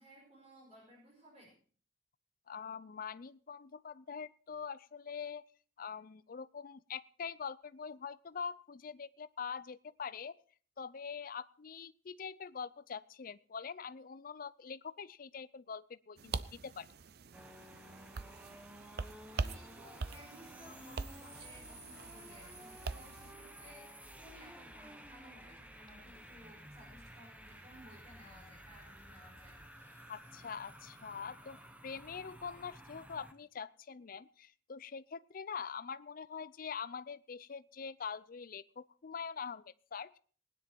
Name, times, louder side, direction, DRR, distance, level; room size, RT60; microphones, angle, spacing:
voice 1, 0.0-1.5 19.3-29.6, equal, 35° right, -2 dB, 5.1 m, -58 dB
voice 2, 2.5-5.4 5.8-10.4 10.8-16.3 16.6-16.9 30.1-31.6 31.8-40.2, left 6 dB, 55° left, 15 dB, 0.5 m, -44 dB
sound 1, 16.2-23.3, right 4 dB, 60° right, 0.6 m, -43 dB
sound 2, 17.3-33.3, right 1 dB, 10° right, 1.2 m, -54 dB
sound 3, 20.8-31.9, equal, 15° left, 2.1 m, -62 dB
19.0 x 10.0 x 4.5 m, 0.43 s
head